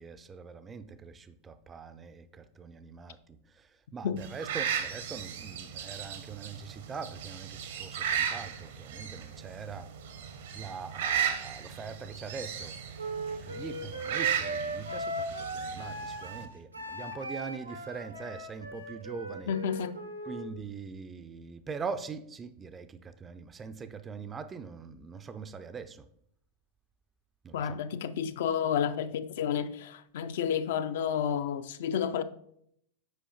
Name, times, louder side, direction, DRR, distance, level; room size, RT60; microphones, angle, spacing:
voice 1, 0.0-9.9 10.5-19.6 20.2-26.1 27.4-27.8, right 5 dB, 20° right, 0.3 m, -42 dB
sound 1, 4.2-16.5, right 8 dB, 60° right, 0.7 m, -36 dB
Wind instrument woodwind instrument, 13.0-20.5, right 1 dB, 90° right, 0.9 m, -38 dB
voice 2, 19.5-20.0 27.5-32.2, left 8 dB, 55° left, 0.4 m, -30 dB
7.8 x 4.8 x 2.8 m
figure-of-eight pair, 90°, 0 cm